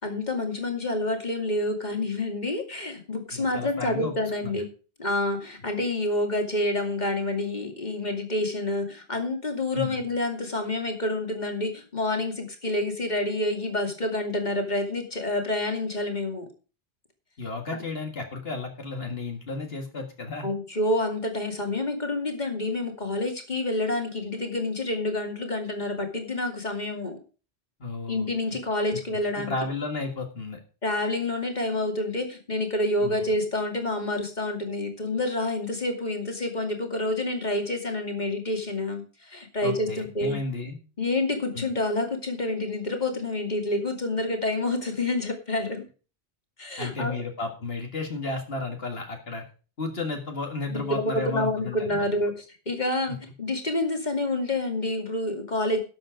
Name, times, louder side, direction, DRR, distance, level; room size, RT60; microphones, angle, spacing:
voice 1, 0.0-4.7 5.0-16.5 20.4-27.2 28.1-29.5 30.8-40.4 41.0-45.8 46.6-47.1 50.7-55.8, left 2 dB, 40° left, 3 dB, 2.6 m, -28 dB
voice 2, 3.3-4.1 4.4-4.5 9.7-10.0 17.4-20.5 27.8-28.3 29.3-30.6 33.0-33.3 39.6-40.8 41.5-41.7 46.8-49.4 49.8-52.1 53.1-53.2, left 3 dB, 60° left, 3 dB, 2.1 m, -33 dB
12.5 x 7.6 x 5.1 m, 0.36 s
omnidirectional pair, 1.1 m